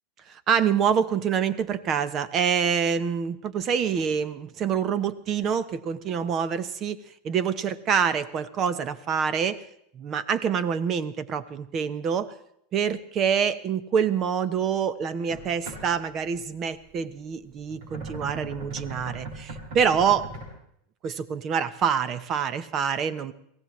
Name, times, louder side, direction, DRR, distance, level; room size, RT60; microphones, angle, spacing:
voice 1, 0.3-7.0 7.2-9.6 9.9-12.3 12.7-20.2 21.0-23.3, right 7 dB, 40° right, 15 dB, 0.9 m, -26 dB
sound 1, 15.3-16.3 17.5-20.4, right 2 dB, 70° right, 5.9 m, -38 dB
24.5 x 17.0 x 3.2 m, 0.72 s
supercardioid pair, 115°, 0 cm